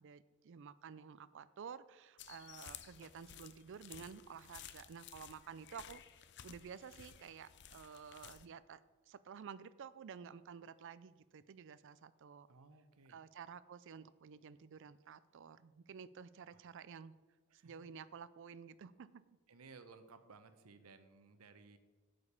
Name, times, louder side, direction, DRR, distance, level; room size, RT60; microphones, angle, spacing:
voice 1, 0.0-8.8 9.1-12.5 13.1-17.1 17.6-19.2, right 6 dB, 55° right, 16 dB, 0.4 m, -52 dB
sound 1, 2.2-8.5, left 10 dB, 50° left, 0.5 m, -55 dB
voice 2, 12.5-13.2 16.5-16.6 17.5-17.7 19.5-21.8, right 4 dB, 75° right, 10 dB, 0.8 m, -59 dB
8.1 x 5.1 x 7.2 m, 1.3 s
head